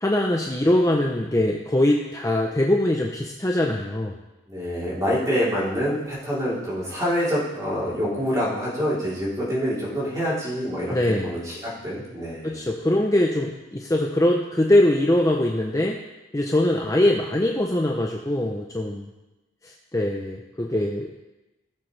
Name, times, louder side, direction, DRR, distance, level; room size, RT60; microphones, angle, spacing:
voice 1, 0.0-4.1 10.9-11.3 12.4-16.0 16.3-19.1 19.9-21.1, left 1 dB, 15° left, 0 dB, 0.6 m, -22 dB
voice 2, 4.5-12.6, equal, 20° right, -8 dB, 3.4 m, -26 dB
17.5 x 7.0 x 3.3 m, 1.0 s
head